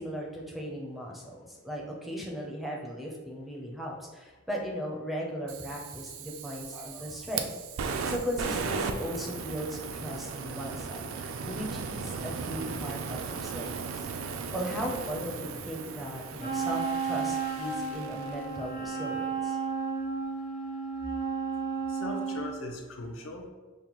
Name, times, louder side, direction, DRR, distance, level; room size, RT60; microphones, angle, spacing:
voice 1, 0.0-7.5 7.8-14.1 14.5-19.6, equal, ahead, -2 dB, 0.5 m, -37 dB
Fire, 5.5-18.6, right 5 dB, 75° right, 0.3 m, -37 dB
Wind instrument woodwind instrument, 16.4-22.5, right 5 dB, 50° left, 0.9 m, -33 dB
voice 2, 21.9-23.5, left 2 dB, 70° left, 2 dB, 0.6 m, -39 dB
5.3 x 2.2 x 3.0 m, 1.2 s
head